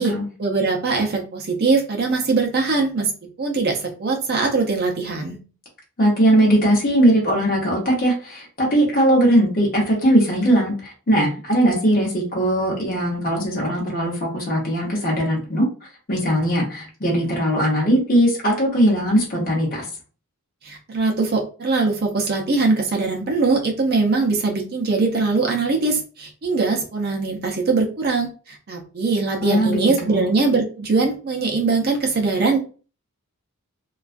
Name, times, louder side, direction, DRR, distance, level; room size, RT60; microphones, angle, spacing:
voice 1, 0.4-5.4 20.6-32.6, right 3 dB, 45° right, 1 dB, 0.5 m, -21 dB
voice 2, 6.0-15.7 16.1-19.8 29.4-30.3, right 1 dB, 40° left, -2 dB, 0.8 m, -19 dB
2.3 x 2.3 x 2.4 m, 0.36 s
head